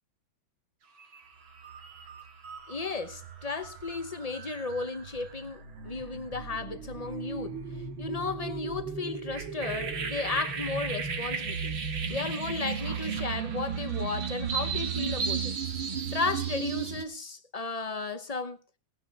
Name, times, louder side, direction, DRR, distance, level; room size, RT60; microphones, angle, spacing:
sound 1, 1.0-1.2 1.6-17.0, right 6 dB, 85° right, 2.7 m, -35 dB
voice 1, 2.7-7.6 8.0-11.8 12.1-15.5 16.1-18.6, left 4 dB, 35° left, 0.6 m, -34 dB
18.5 x 11.0 x 4.1 m
omnidirectional pair, 2.2 m